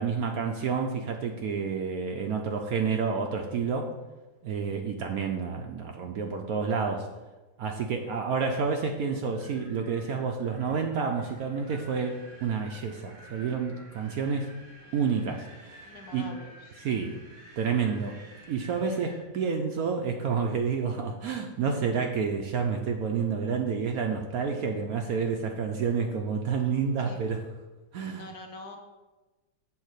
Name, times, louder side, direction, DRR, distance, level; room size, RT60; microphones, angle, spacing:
voice 1, 0.0-3.9 4.4-7.1 7.6-14.5 14.9-16.3 16.8-17.2 17.6-18.2 18.5-27.4 27.9-28.2, right 5 dB, 65° right, 3 dB, 0.9 m, -29 dB
Wind, 9.3-19.3, right 1 dB, 50° right, 1.8 m, -51 dB
voice 2, 15.8-17.2 27.0-27.2 28.1-28.8, left 3 dB, 65° left, 4 dB, 1.2 m, -45 dB
7.3 x 3.9 x 6.5 m, 1.2 s
omnidirectional pair, 2.0 m